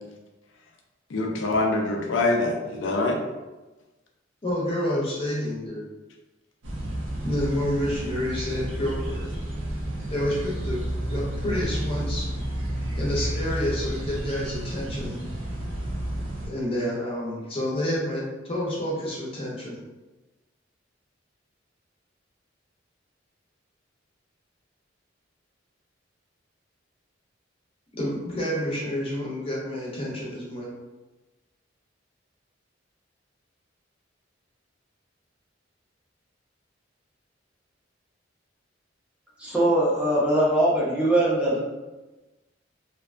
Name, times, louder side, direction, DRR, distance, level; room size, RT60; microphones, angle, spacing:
voice 1, 1.1-3.2, left 2 dB, 85° left, 1 dB, 0.5 m, -24 dB
voice 2, 4.4-5.8 7.2-9.3 10.1-10.8 11.1-12.3 13.0-15.2 16.5-19.8 27.9-30.7, left 1 dB, 30° left, -5 dB, 0.6 m, -29 dB
sound 1, 6.6-16.5, right 1 dB, 70° right, 0.5 m, -31 dB
voice 3, 39.4-41.6, right 1 dB, 5° right, -6 dB, 0.6 m, -21 dB
2.5 x 2.3 x 2.4 m, 1.1 s
head